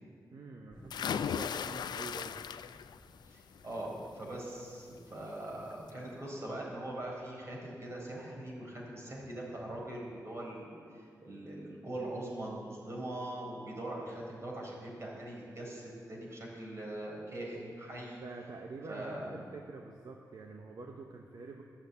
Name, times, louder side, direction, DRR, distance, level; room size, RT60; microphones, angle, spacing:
voice 1, 0.3-2.4 18.2-21.6, right 3 dB, 65° right, 2 dB, 0.9 m, -46 dB
sound 1, 0.7-5.9 6.5-7.2, left 1 dB, 25° left, 1.9 m, -58 dB
sound 2, 0.9-3.0 3.4-3.8 5.2-5.3 5.7-5.8, left 8 dB, 85° left, 0.3 m, -36 dB
voice 2, 3.2-10.7 10.9-18.2 18.9-19.3, right 1 dB, 40° right, -2 dB, 4.2 m, -42 dB
13.0 x 7.5 x 8.2 m, 2.2 s
wide cardioid pair, 95°, 7 cm